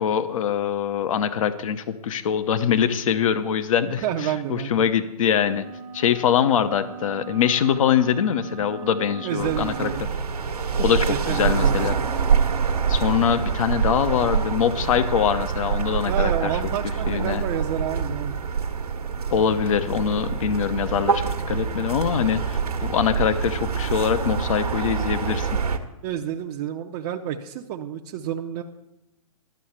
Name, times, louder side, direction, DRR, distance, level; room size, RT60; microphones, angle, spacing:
voice 1, 0.0-5.6 5.9-9.9 10.8-12.0 12.9-16.5 17.1-17.4 19.3-25.5, left 8 dB, 60° left, 12 dB, 0.8 m, -23 dB
voice 2, 3.9-4.8 9.2-10.0 11.1-11.8 16.0-18.3 26.0-28.6, right 10 dB, 35° right, 2 dB, 0.6 m, -29 dB
sound 1, 5.4-10.0, right 8 dB, 65° right, 1.2 m, -39 dB
sound 2, 9.4-25.8, right 6 dB, 85° right, 1.2 m, -25 dB
11.5 x 6.4 x 7.1 m, 0.91 s
hypercardioid pair, 125°, 19 cm